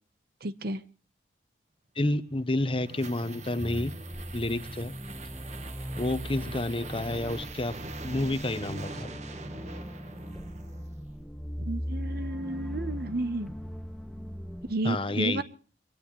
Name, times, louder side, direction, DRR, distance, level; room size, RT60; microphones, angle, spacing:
voice 1, 0.4-0.8 11.6-13.5 14.7-15.4, right 2 dB, 55° right, 13 dB, 1.1 m, -32 dB
voice 2, 2.0-3.9 4.3-4.9 6.0-7.8 8.0-9.1 14.8-15.4, left 2 dB, 30° left, 12 dB, 1.0 m, -29 dB
sound 1, 2.3-11.1, right 3 dB, 40° right, 1.5 m, -44 dB
sound 2, 3.6-14.7, equal, ahead, 0.7 m, -39 dB
24.0 x 18.0 x 3.3 m, 0.40 s
head